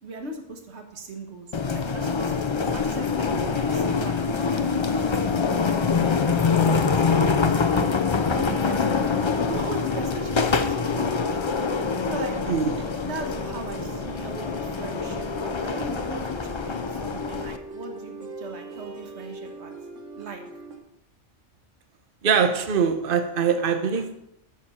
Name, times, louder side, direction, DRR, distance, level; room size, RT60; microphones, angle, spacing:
voice 1, 0.0-5.2 6.1-7.9 8.3-8.9 9.5-11.3 12.1-12.4 13.0-19.7 20.1-20.4, right 3 dB, 65° right, 5 dB, 1.6 m, -38 dB
sound 1, 1.5-17.6, left 5 dB, 40° left, 0.4 m, -25 dB
sound 2, 6.4-20.8, right 3 dB, 85° right, 1.8 m, -41 dB
voice 2, 12.5-12.9 22.2-24.2, right 6 dB, 50° right, 8 dB, 1.1 m, -23 dB
12.5 x 7.5 x 4.3 m, 0.85 s
omnidirectional pair, 1.3 m